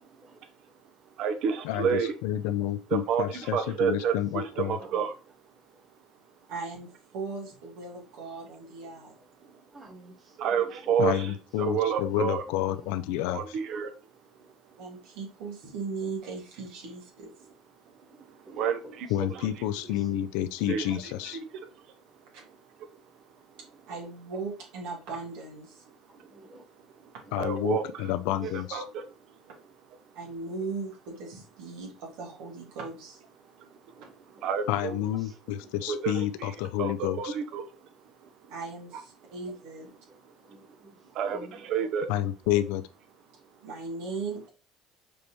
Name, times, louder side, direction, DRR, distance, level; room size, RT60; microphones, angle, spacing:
voice 1, 1.2-2.1 2.9-5.1 9.4-9.6 10.4-12.4 13.3-13.9 18.1-19.7 20.7-21.9 22.9-23.0 26.1-26.5 26.8-28.1 28.4-29.4 33.6-34.1 34.4-35.0 35.9-37.6 38.0-38.3 40.5-40.6 41.1-42.1, right 7 dB, 65° right, 0.8 m, -31 dB
voice 2, 2.2-4.8 11.0-13.6 19.1-21.4 27.3-28.8 34.7-37.3 42.1-42.8, left 12 dB, 85° left, 0.3 m, -29 dB
voice 3, 6.5-9.1 14.8-17.3 23.9-25.8 30.1-33.2 38.5-39.9 43.6-44.5, right 4 dB, 80° right, 1.8 m, -38 dB
voice 4, 9.7-11.2 12.7-12.9 18.1-18.7 19.3-19.5 20.0-20.2 26.1-26.6 34.0-34.7 35.2-35.6 40.4-41.0 41.2-41.6, right 2 dB, 15° right, 1.6 m, -50 dB
5.1 x 3.4 x 3.0 m
supercardioid pair, 110°, 0 cm